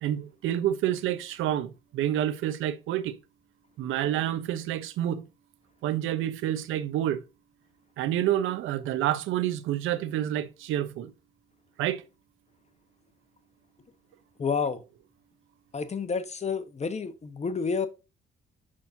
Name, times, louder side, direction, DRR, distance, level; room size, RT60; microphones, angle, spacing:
voice 1, 0.0-3.2 3.8-5.2 5.8-7.2 8.0-11.1 11.8-12.0, right 12 dB, 90° right, 0.8 m, -28 dB
voice 2, 14.4-14.8 15.7-17.9, left 5 dB, 35° left, 1.1 m, -29 dB
6.2 x 5.9 x 2.6 m
cardioid pair, 90°, 20 cm